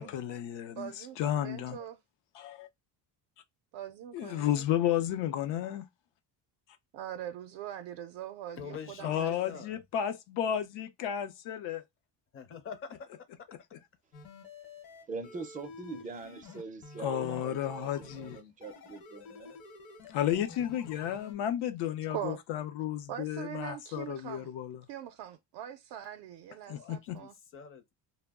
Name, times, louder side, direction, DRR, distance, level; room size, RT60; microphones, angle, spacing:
voice 1, 0.0-1.8 2.3-2.7 4.1-5.8 9.0-11.8 17.0-18.4 20.1-24.8 26.7-27.2, left 10 dB, 75° left, 0.6 m, -32 dB
voice 2, 0.7-2.0 3.7-4.7 6.9-9.6 22.1-22.4 23.1-24.5 24.9-27.3, right 11 dB, 75° right, 0.5 m, -42 dB
voice 3, 8.6-9.8 12.3-13.3 13.5-13.8 26.7-28.0, left 6 dB, 30° left, 0.5 m, -46 dB
sound 1, 14.1-21.3, left 4 dB, 55° left, 0.9 m, -50 dB
voice 4, 15.1-19.6, right 4 dB, 20° right, 0.4 m, -43 dB
2.2 x 2.1 x 3.4 m
cardioid pair, 145°, 43 cm